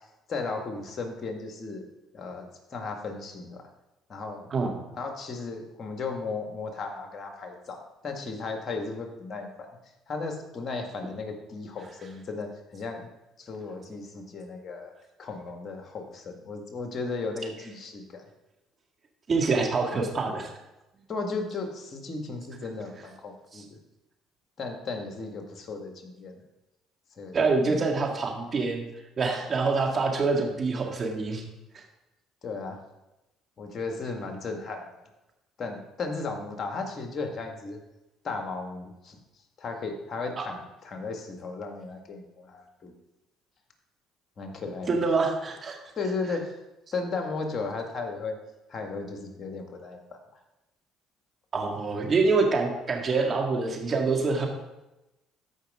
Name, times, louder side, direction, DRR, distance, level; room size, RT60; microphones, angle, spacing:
voice 1, 0.3-1.9 2.1-3.6 4.1-4.5 4.9-9.7 10.1-13.1 13.4-14.9 15.2-18.3 21.1-23.8 24.6-26.4 27.2-27.9 32.4-32.8 33.6-35.0 35.6-37.8 38.2-39.2 39.6-42.9 44.4-44.9 46.0-46.6 46.9-48.4 48.7-50.2, left 3 dB, 45° left, 4 dB, 1.8 m, -35 dB
voice 2, 19.3-20.5 23.5-23.6 27.3-28.9 29.2-31.4 31.7-31.8 44.9-45.8 51.5-54.5, right 4 dB, 40° right, 2 dB, 1.9 m, -26 dB
14.0 x 5.3 x 3.7 m, 0.98 s
supercardioid pair, 65°, 0 cm